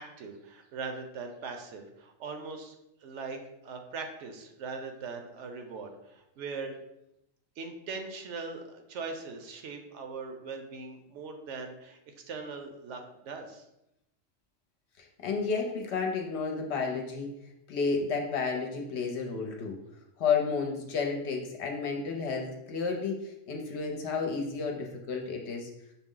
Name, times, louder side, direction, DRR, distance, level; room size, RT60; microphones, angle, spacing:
voice 1, 0.0-2.7 3.0-6.7 7.6-13.6, right 4 dB, 70° right, 4 dB, 0.9 m, -40 dB
voice 2, 15.0-17.3 17.7-19.7 20.2-25.7, left 5 dB, 65° left, 2 dB, 0.9 m, -31 dB
5.9 x 2.0 x 3.7 m, 0.85 s
omnidirectional pair, 1.3 m